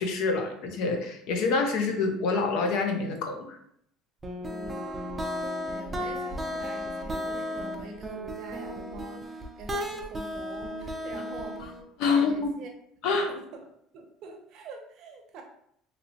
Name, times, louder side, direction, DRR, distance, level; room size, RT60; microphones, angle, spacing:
voice 1, 0.0-3.6 11.6-11.7 12.0-12.5 13.0-13.3, left 4 dB, 70° left, 4 dB, 0.6 m, -26 dB
sound 1, 4.2-11.8, equal, 15° right, 0.4 m, -34 dB
voice 2, 4.4-5.0 5.6-11.7 12.1-12.7 13.3-13.7 13.9-15.4, right 3 dB, 55° right, 3 dB, 0.6 m, -45 dB
3.0 x 2.7 x 2.8 m, 0.70 s
cardioid pair, 140°, 0 cm